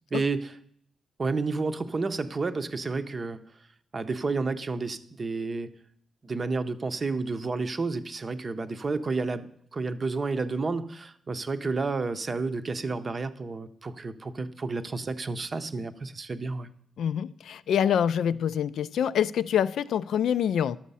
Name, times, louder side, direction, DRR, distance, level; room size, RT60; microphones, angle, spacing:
voice 1, 0.1-0.5 1.2-3.4 3.9-5.7 6.2-16.7, right 3 dB, 30° right, 0.6 m, -31 dB
voice 2, 17.0-20.8, left 9 dB, 80° left, 0.3 m, -26 dB
11.5 x 7.3 x 5.5 m
wide cardioid pair, 150°, 0 cm